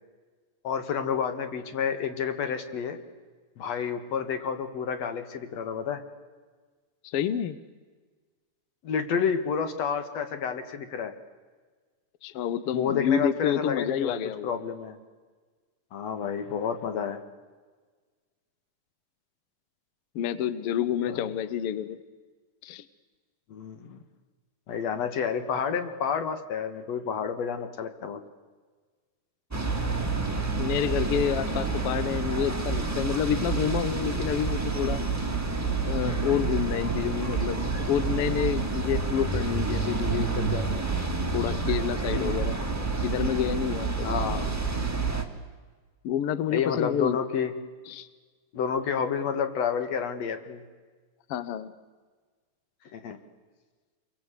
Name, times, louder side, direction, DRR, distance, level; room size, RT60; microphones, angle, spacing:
voice 1, 0.6-3.0 3.6-6.0 8.8-11.1 12.7-15.0 15.9-17.2 21.1-21.2 23.5-24.0 24.7-28.2 42.1-42.4 44.0-44.5 46.5-47.5 48.5-50.6 52.9-53.2, left 7 dB, 55° left, 8 dB, 2.6 m, -30 dB
voice 2, 7.0-7.6 12.2-14.6 20.1-22.0 22.6-22.8 30.6-35.0 35.9-40.9 41.3-42.6 43.0-44.1 46.0-47.2 47.9-48.1 51.3-51.7, left 9 dB, 75° left, 13 dB, 1.3 m, -29 dB
sound 1, 29.5-45.2, right 4 dB, 5° right, 1.3 m, -28 dB
28.0 x 23.0 x 8.2 m, 1.4 s
omnidirectional pair, 3.7 m